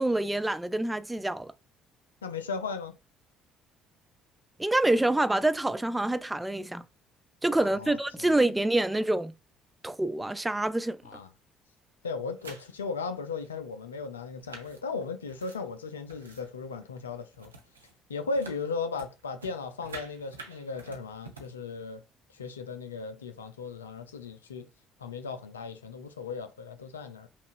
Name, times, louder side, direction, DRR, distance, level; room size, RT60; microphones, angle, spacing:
voice 1, 0.0-1.5 4.6-6.9 7.4-9.3 9.8-11.0, right 2 dB, 10° right, 0.4 m, -26 dB
voice 2, 2.2-3.0 7.6-8.4 11.0-11.3 12.0-17.5 18.1-22.0 22.3-24.7 25.0-27.3, left 4 dB, 80° left, 0.5 m, -36 dB
sound 1, 12.3-12.9 13.4-13.5 14.2-16.5 16.8-17.0 17.3-18.0 18.3-21.5, right 3 dB, 85° right, 0.6 m, -48 dB
5.5 x 2.4 x 2.4 m
figure-of-eight pair, 50°, 0 cm